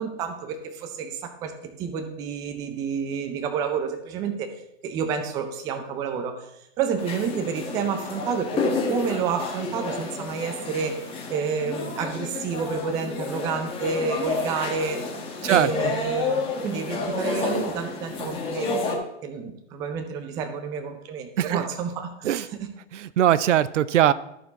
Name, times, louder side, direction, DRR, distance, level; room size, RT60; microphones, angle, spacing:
voice 1, 0.0-4.5 4.8-6.5 6.8-15.0 15.5-19.0 19.2-22.7, right 6 dB, 10° right, 6 dB, 0.4 m, -29 dB
sound 1, 7.0-19.0, left 3 dB, 15° left, 1.2 m, -30 dB
voice 2, 15.4-15.9 21.4-21.6 22.2-22.5 22.9-24.1, right 11 dB, 75° right, 17 dB, 0.6 m, -21 dB
13.5 x 4.5 x 4.0 m, 0.80 s
hypercardioid pair, 140°, 37 cm